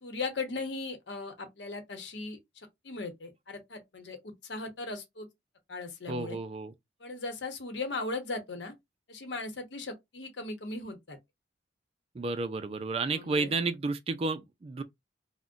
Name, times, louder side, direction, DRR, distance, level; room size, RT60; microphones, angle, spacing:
voice 1, 0.0-2.4 2.8-5.3 5.7-6.4 7.0-8.7 9.1-11.2 13.1-13.5, left 3 dB, 75° left, 0.9 m, -38 dB
voice 2, 6.1-6.7 12.1-14.8, right 3 dB, 35° right, 0.3 m, -31 dB
2.5 x 2.1 x 3.6 m
head